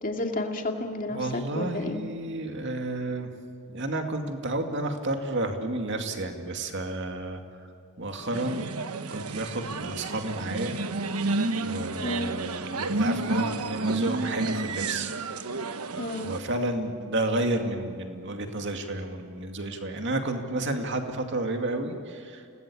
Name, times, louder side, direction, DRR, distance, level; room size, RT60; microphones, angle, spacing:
voice 1, 0.0-2.1 12.0-12.3 16.0-16.3, left 2 dB, 35° left, 3 dB, 2.3 m, -31 dB
voice 2, 1.1-3.3 3.7-7.7 8.0-8.7 9.1-10.8 11.6-15.1 16.2-22.5, right 2 dB, 55° right, 4 dB, 2.4 m, -31 dB
sound 1, 8.3-16.4, right 2 dB, 85° right, 1.2 m, -31 dB
30.0 x 19.0 x 8.6 m, 2.5 s
head